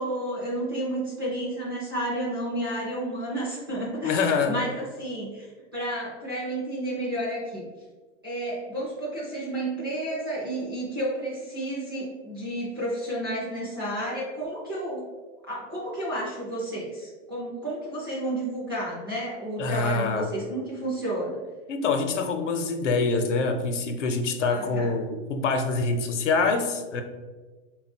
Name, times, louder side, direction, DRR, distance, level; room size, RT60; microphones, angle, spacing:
voice 1, 0.0-5.5 5.7-7.7 8.2-15.0 15.5-21.4 24.4-24.9, right 1 dB, 20° right, -7 dB, 0.4 m, -31 dB
voice 2, 4.0-4.6 19.6-20.3 21.7-27.0, left 4 dB, 75° left, 6 dB, 0.7 m, -25 dB
3.7 x 2.3 x 4.2 m, 1.3 s
supercardioid pair, 180°, 37 cm